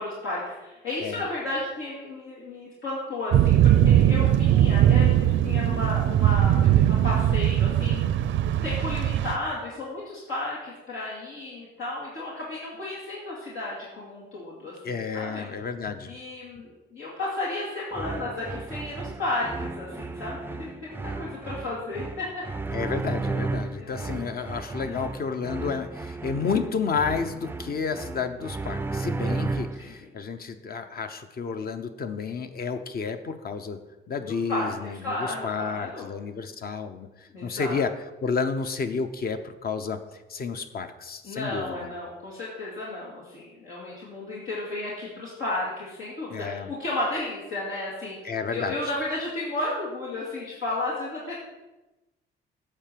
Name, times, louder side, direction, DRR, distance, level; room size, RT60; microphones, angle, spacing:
voice 1, 0.0-8.0 8.4-15.4 16.1-22.6 23.8-24.3 24.8-25.1 29.2-30.1 34.3-34.7 35.0-36.1 37.3-37.8 41.2-51.4, left 2 dB, 85° left, -6 dB, 2.4 m, -33 dB
sound 1, 3.3-9.4, right 11 dB, 75° right, 0.5 m, -20 dB
voice 2, 14.8-16.1 22.7-33.8 34.1-37.9 38.2-40.0 40.3-41.9 46.3-46.7 48.2-48.7, left 5 dB, 50° left, 8 dB, 0.9 m, -31 dB
sound 2, 17.9-30.0, right 3 dB, 10° right, 0.4 m, -34 dB
8.9 x 4.7 x 6.8 m, 1.0 s
cardioid pair, 90°, 20 cm